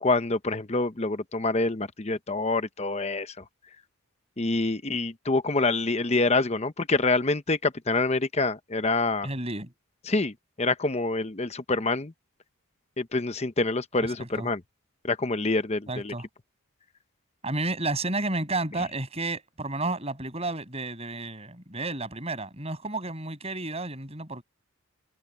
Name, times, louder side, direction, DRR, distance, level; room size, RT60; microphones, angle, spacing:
voice 1, 0.0-3.3 4.4-9.3 10.1-10.3 10.6-12.1 13.0-14.6 15.0-16.1, left 3 dB, 30° left, 0.8 m, -26 dB
voice 2, 9.2-9.7 14.0-14.5 15.9-16.3 17.4-24.4, right 2 dB, 30° right, 7.9 m, -31 dB
head